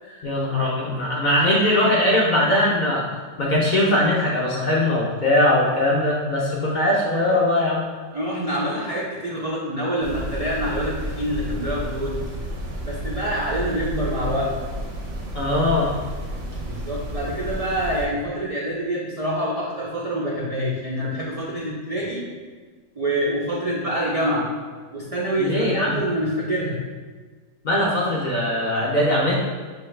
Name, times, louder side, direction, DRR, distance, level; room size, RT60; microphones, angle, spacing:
voice 1, 0.2-3.0 3.4-7.8 15.3-15.9 25.4-26.0 27.6-29.3, left 1 dB, 50° left, -5 dB, 0.6 m, -20 dB
voice 2, 8.1-12.2 12.8-14.5 16.6-22.2 23.0-24.5 24.9-26.8, equal, 55° right, -5 dB, 0.4 m, -26 dB
sound 1, 10.0-18.1, equal, 85° right, 1.2 m, -31 dB
6.2 x 2.3 x 3.1 m, 1.4 s
omnidirectional pair, 1.4 m